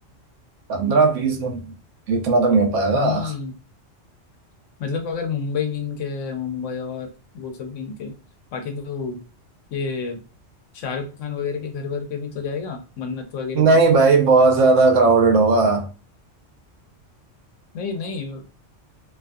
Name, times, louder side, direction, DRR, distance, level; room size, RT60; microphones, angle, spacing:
voice 1, 0.7-1.7 2.1-3.3 13.5-15.9, right 3 dB, 85° right, 1.0 m, -17 dB
voice 2, 2.9-3.6 4.8-8.1 8.5-9.2 9.7-10.2 10.7-13.8 17.7-18.5, left 5 dB, 80° left, 1.0 m, -29 dB
2.6 x 2.3 x 2.5 m
omnidirectional pair, 1.3 m